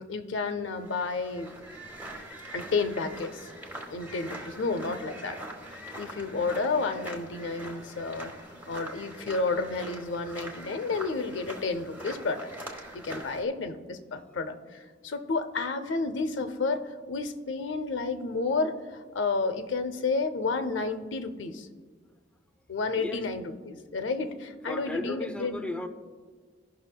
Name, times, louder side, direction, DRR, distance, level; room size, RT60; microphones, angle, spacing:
voice 1, 0.0-1.5 2.5-3.5 3.9-5.4 6.0-8.3 8.7-12.5 12.9-21.7 22.7-25.7, left 3 dB, 90° left, 8 dB, 0.6 m, -31 dB
sound 1, 0.7-13.4, right 1 dB, 10° right, 1.0 m, -43 dB
voice 2, 24.7-25.9, left 1 dB, 5° left, 6 dB, 0.5 m, -35 dB
16.5 x 5.9 x 2.2 m, 1.5 s
head